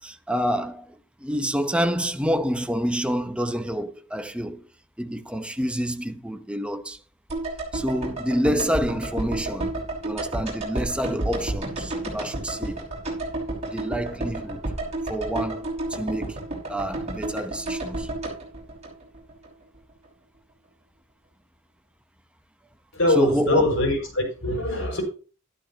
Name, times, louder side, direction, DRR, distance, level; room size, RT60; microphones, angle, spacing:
voice 1, 0.0-4.7 5.0-7.0 7.7-12.8 13.7-14.6 15.1-18.1 23.2-23.8, equal, 5° right, 0.9 m, -28 dB
sound 1, 7.3-19.5 19.7-19.8, right 2 dB, 35° right, 5.7 m, -31 dB
voice 2, 22.9-25.0, left 1 dB, 80° left, 5.7 m, -23 dB
12.5 x 12.0 x 2.9 m
head